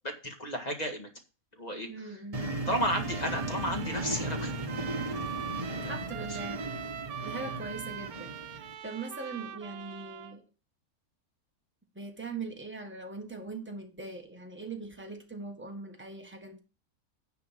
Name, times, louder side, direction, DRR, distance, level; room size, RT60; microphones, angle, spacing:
voice 1, 0.0-1.1 1.6-2.1 2.7-4.5 5.8-5.9 6.3-6.4, equal, 30° left, 4 dB, 1.8 m, -33 dB
voice 2, 1.9-2.4 5.8-6.6 7.2-10.4 11.9-16.6, right 3 dB, 10° right, 2 dB, 1.5 m, -41 dB
sound 1, 2.3-8.7, right 1 dB, 25° right, 1.4 m, -36 dB
Trumpet, 2.8-10.4, right 10 dB, 80° right, 1.3 m, -42 dB
10.0 x 5.0 x 5.9 m, 0.33 s
omnidirectional pair, 1.5 m